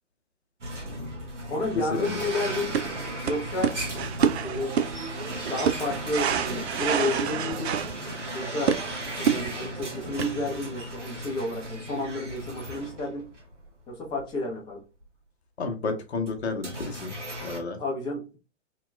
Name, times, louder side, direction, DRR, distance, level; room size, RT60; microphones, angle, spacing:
sound 1, 0.6-13.7 14.1-14.2 15.0-15.1 16.2-17.6, right 1 dB, 80° right, 1.1 m, -36 dB
voice 1, 1.5-2.8 3.2-3.8 4.3-4.7 5.4-7.8 8.3-13.3 13.9-14.8 17.8-18.4, left 2 dB, 15° left, -2 dB, 0.7 m, -31 dB
sound 2, 2.5-10.4, right 8 dB, 65° right, 0.5 m, -29 dB
voice 2, 15.6-17.1 17.4-17.8, left 3 dB, 65° left, 5 dB, 0.8 m, -31 dB
2.9 x 2.9 x 2.2 m, 0.32 s
figure-of-eight pair, 110°, 36 cm